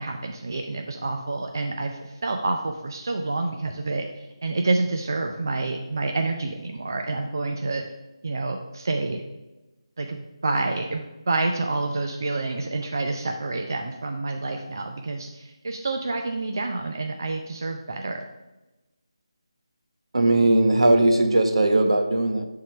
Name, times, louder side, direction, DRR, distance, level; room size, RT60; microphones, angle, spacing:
voice 1, 0.0-7.8 8.2-9.2 10.0-18.2, right 3 dB, 40° right, 4 dB, 0.5 m, -28 dB
voice 2, 20.1-22.4, right 2 dB, 70° right, 6 dB, 1.1 m, -19 dB
10.5 x 3.8 x 5.6 m, 1.1 s
figure-of-eight pair, 180°, 3 cm